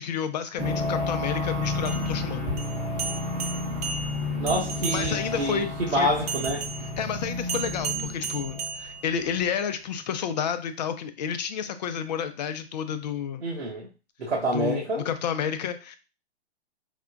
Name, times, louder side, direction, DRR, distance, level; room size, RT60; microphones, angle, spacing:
voice 1, 0.0-2.5 4.9-6.1 7.0-13.4 14.5-16.0, left 8 dB, 40° left, 10 dB, 0.5 m, -30 dB
sound 1, 0.6-8.8, left 2 dB, 10° left, 0.9 m, -31 dB
sound 2, 1.8-5.4 6.3-9.5, right 6 dB, 35° right, 0.6 m, -35 dB
voice 2, 4.4-6.6 13.4-13.9 14.2-15.0, right 1 dB, 85° right, -4 dB, 1.0 m, -27 dB
4.9 x 2.2 x 2.4 m, 0.32 s
figure-of-eight pair, 125°, 33 cm